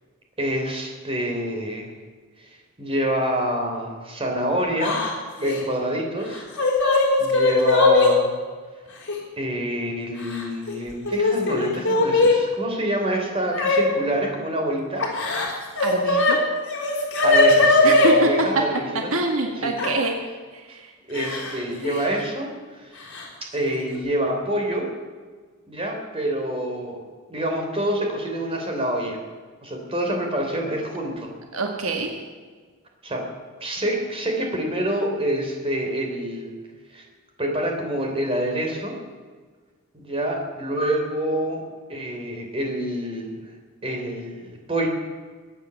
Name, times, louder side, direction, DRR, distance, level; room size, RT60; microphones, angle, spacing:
voice 1, 0.4-1.9 2.4-2.5 2.8-5.0 5.4-6.5 7.2-8.3 9.4-15.1 17.2-19.1 19.6-19.7 21.1-23.0 23.5-24.9 25.7-27.0 27.3-29.2 29.6-31.3 33.0-33.2 33.6-36.5 36.9-37.0 37.4-39.0 40.0-41.6 41.9-43.3 43.8-44.9, right 1 dB, 25° right, 1 dB, 3.5 m, -27 dB
Yell / Crying sobbing, 4.8-5.1 5.4-5.6 6.3-8.1 9.1-9.2 10.2-10.7 11.1-12.3 13.5-13.8 15.0-16.3 16.7-18.1 19.8-19.9 21.1-21.6 21.8-22.0 23.1-23.2 23.6-24.0, left 2 dB, 60° left, 4.7 m, -19 dB
voice 2, 15.8-16.4 17.8-18.3 19.1-20.1 20.5-20.9 31.5-32.2, right 2 dB, 75° right, 2 dB, 1.7 m, -25 dB
23.0 x 8.9 x 7.0 m, 1.5 s
head